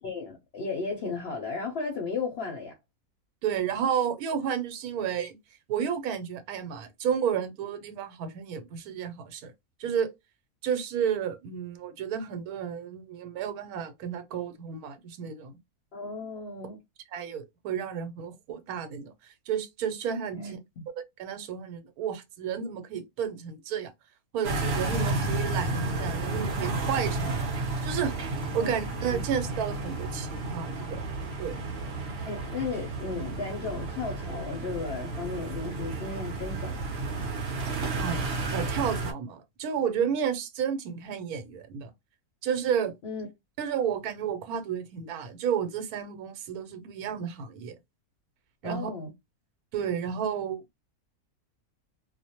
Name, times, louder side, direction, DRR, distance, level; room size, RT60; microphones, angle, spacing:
voice 1, 0.0-2.7 15.9-16.8 20.3-20.8 28.6-29.3 32.0-36.9 43.0-43.3 48.6-49.1, left 4 dB, 60° left, 0.7 m, -35 dB
voice 2, 3.4-5.4 5.7-9.5 9.8-10.1 10.6-15.6 17.1-20.6 21.2-23.9 24.3-27.5 27.8-28.1 28.5-31.0 31.4-31.6 38.0-38.2 38.5-41.9 42.4-42.9 43.6-47.8 48.6-48.9 49.7-50.8, right 8 dB, 85° right, 1.1 m, -31 dB
sound 1, 24.4-39.1, right 3 dB, 60° right, 0.7 m, -32 dB
2.4 x 2.0 x 2.7 m
omnidirectional pair, 1.5 m